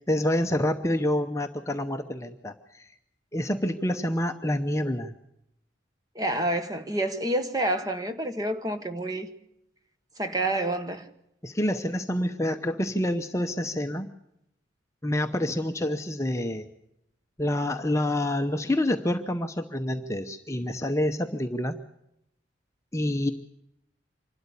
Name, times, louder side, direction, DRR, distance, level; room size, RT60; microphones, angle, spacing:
voice 1, 0.1-2.9 3.3-5.1 11.4-14.1 15.0-16.7 17.4-21.8 22.9-23.3, left 1 dB, 15° left, 0.8 m, -27 dB
voice 2, 6.1-9.3 10.2-11.1, right 1 dB, 20° right, 1.2 m, -28 dB
26.0 x 12.5 x 8.2 m
head